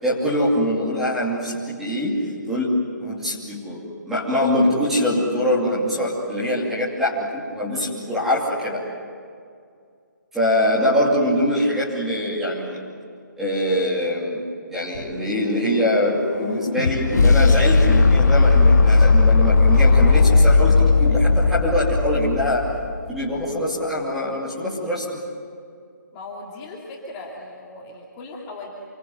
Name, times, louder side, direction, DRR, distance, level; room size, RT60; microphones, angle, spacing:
voice 1, 0.0-2.2 2.5-2.7 3.0-3.8 4.1-8.8 10.3-12.8 13.4-14.4 14.7-22.6 23.1-25.2, equal, 5° right, -7 dB, 2.7 m, -23 dB
sound 1, 15.0-23.1, left 4 dB, 60° left, 1.5 m, -17 dB
voice 2, 26.1-28.7, left 2 dB, 15° left, -3 dB, 2.6 m, -38 dB
28.0 x 25.0 x 7.8 m, 2.2 s
hypercardioid pair, 175°, 10 cm